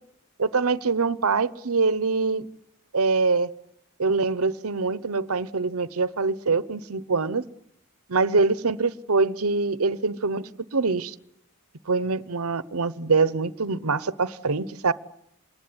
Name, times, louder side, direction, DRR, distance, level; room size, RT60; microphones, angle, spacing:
voice 1, 0.4-2.5 2.9-3.5 4.0-7.4 8.1-11.1 11.9-14.9, right 4 dB, 80° right, 0.9 m, -24 dB
27.0 x 20.0 x 9.8 m
head